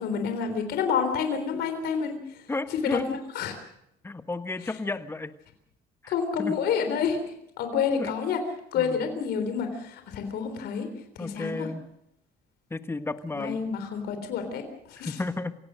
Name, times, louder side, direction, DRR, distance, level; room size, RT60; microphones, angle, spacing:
voice 1, 0.0-2.2 2.7-3.5 6.1-7.2 7.6-8.4 8.7-10.9 11.2-11.7 13.4-15.2, left 6 dB, 75° left, 7 dB, 3.8 m, -28 dB
voice 2, 2.5-3.1 4.0-5.3 6.0-6.1 6.4-6.6 7.7-8.2 8.8-9.0 11.2-11.8 12.7-13.6 15.0-15.5, left 2 dB, 15° left, 10 dB, 1.4 m, -32 dB
27.0 x 17.0 x 6.4 m, 0.77 s
cardioid pair, 110°, 17 cm